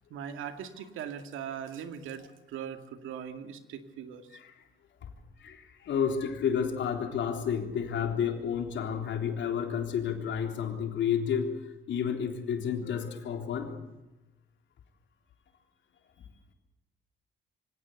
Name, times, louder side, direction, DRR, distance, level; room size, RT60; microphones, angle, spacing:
voice 1, 0.1-4.3, right 8 dB, 85° right, 8 dB, 2.2 m, -40 dB
voice 2, 5.4-11.5 11.9-13.7, left 7 dB, 70° left, 4 dB, 3.7 m, -31 dB
24.0 x 17.0 x 8.1 m, 1.0 s
cardioid pair, 90°, 20 cm